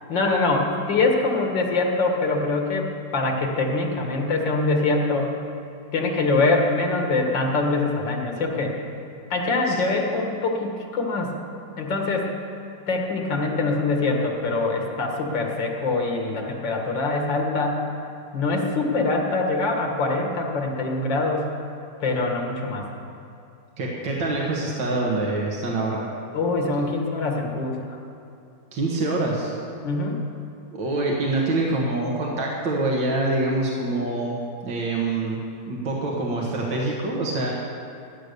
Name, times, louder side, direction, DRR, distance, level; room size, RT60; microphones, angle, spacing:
voice 1, 0.1-2.9 3.1-5.3 5.9-8.7 9.3-11.4 11.8-12.3 12.9-17.9 18.3-21.5 22.0-22.9 26.3-28.0 29.8-30.2, left 3 dB, 80° left, 1 dB, 2.5 m, -24 dB
voice 2, 23.8-26.0 28.7-29.5 30.7-34.4 34.6-35.4 35.7-37.5, right 2 dB, 85° right, -3 dB, 2.3 m, -25 dB
16.5 x 9.9 x 6.8 m, 2.6 s
omnidirectional pair, 2.0 m